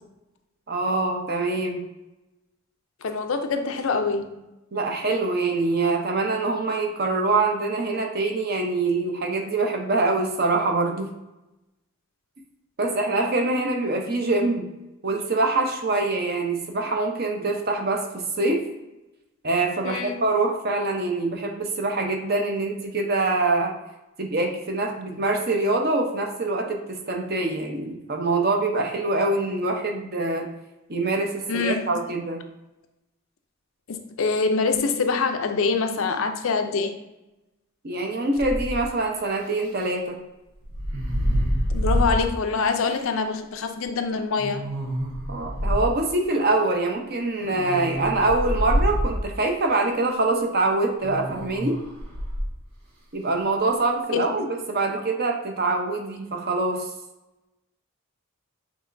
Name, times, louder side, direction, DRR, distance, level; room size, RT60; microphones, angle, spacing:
voice 1, 0.7-1.8 4.7-11.1 12.8-14.7 15.0-18.7 19.4-23.7 24.2-30.5 30.9-32.4 37.8-40.2 45.3-51.8 53.1-56.9, right 2 dB, 45° right, 2 dB, 0.7 m, -24 dB
voice 2, 3.0-4.4 19.8-20.2 31.5-31.9 33.9-36.9 41.7-44.7 54.1-54.4, left 4 dB, 65° left, 6 dB, 0.5 m, -25 dB
sound 1, 38.4-38.9 40.6-42.3 42.9-43.0 44.4-45.9 47.4-49.3 51.0-52.5, equal, 90° right, 1.3 m, -26 dB
6.2 x 3.0 x 2.6 m, 0.97 s
head